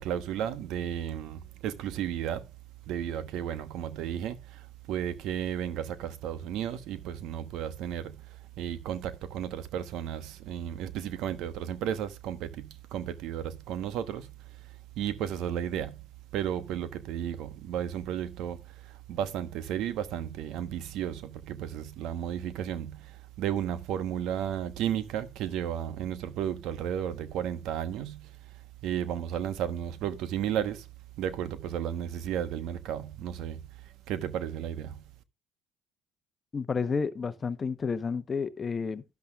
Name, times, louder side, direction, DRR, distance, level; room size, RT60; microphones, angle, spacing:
voice 1, 0.0-2.5 2.9-16.0 16.3-30.9 31.2-35.0, right 10 dB, 70° right, 1.1 m, -34 dB
voice 2, 36.5-39.0, left 5 dB, 30° left, 0.9 m, -31 dB
12.5 x 10.5 x 2.4 m
supercardioid pair, 80°, 0 cm